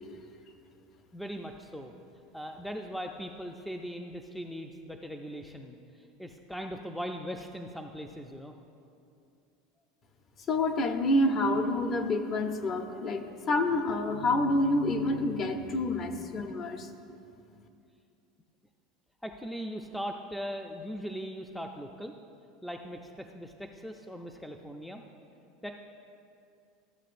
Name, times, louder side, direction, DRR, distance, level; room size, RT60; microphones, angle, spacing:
voice 1, 1.1-1.9 2.3-5.8 6.2-8.6 19.2-22.1 22.6-25.0 25.6-25.7, equal, 5° left, 3 dB, 0.4 m, -39 dB
voice 2, 10.5-16.9, left 1 dB, 35° left, 7 dB, 0.7 m, -28 dB
14.5 x 7.4 x 2.5 m, 2.5 s
supercardioid pair, 125°, 0 cm